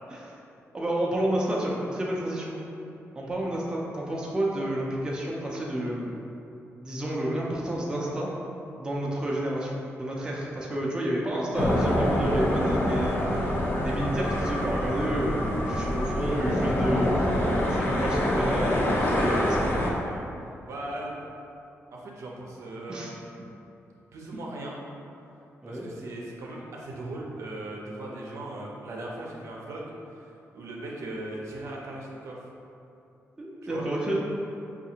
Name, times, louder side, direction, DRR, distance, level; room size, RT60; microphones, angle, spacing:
voice 1, 0.7-2.6 3.2-6.2 6.8-8.3 8.8-13.4 13.8-15.4 15.7-17.1 17.7-19.7 22.9-23.1 25.6-25.9 33.4-34.2, right 1 dB, 15° right, -4 dB, 0.5 m, -30 dB
sound 1, 11.5-19.9, left 1 dB, 40° left, 0.6 m, -26 dB
voice 2, 20.7-21.1 21.9-23.1 24.1-24.8 25.7-29.8 30.1-32.4 33.6-33.8, right 2 dB, 75° right, -3 dB, 0.6 m, -38 dB
5.0 x 2.4 x 2.8 m, 2.7 s
wide cardioid pair, 150°, 5 cm